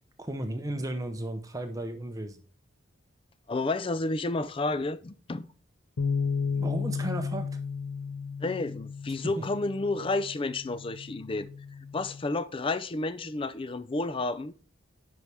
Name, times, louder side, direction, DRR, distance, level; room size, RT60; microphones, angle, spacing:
voice 1, 0.2-2.4 6.5-7.6 9.2-9.4, right 1 dB, 15° right, 0.7 m, -34 dB
voice 2, 3.5-5.5 8.4-11.5 11.9-14.5, left 2 dB, 25° left, 0.4 m, -31 dB
sound 1, 6.0-12.2, left 5 dB, 80° left, 0.5 m, -34 dB
9.3 x 5.5 x 3.4 m
head